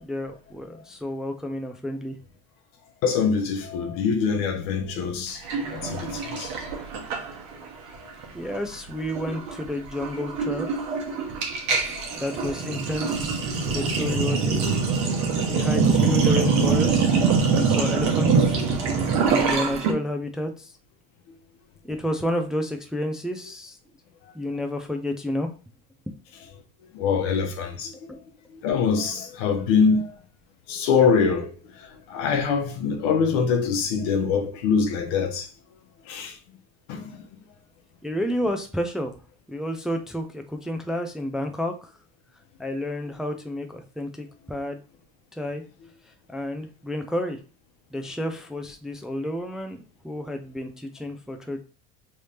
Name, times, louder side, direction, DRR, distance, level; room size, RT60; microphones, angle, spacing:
voice 1, 0.0-2.1 8.3-11.2 12.2-13.4 13.7-14.6 15.5-17.0 17.5-18.6 19.4-20.7 21.9-23.8 24.3-25.5 28.1-28.2 38.0-39.1 39.5-41.9 42.6-44.8 45.4-45.6 46.3-47.4 47.9-51.6, left 1 dB, ahead, 0.3 m, -30 dB
voice 2, 3.0-5.4 5.7-6.5 11.8-12.2 13.8-13.9 26.9-27.9 28.5-30.1 30.7-35.5 36.1-36.4 36.9-37.1, left 5 dB, 80° left, 0.9 m, -24 dB
Sink (filling or washing), 5.5-7.7 7.9-8.2 8.5-19.9, right 5 dB, 75° right, 1.1 m, -24 dB
3.2 x 2.6 x 3.3 m
cardioid pair, 125°, 30 cm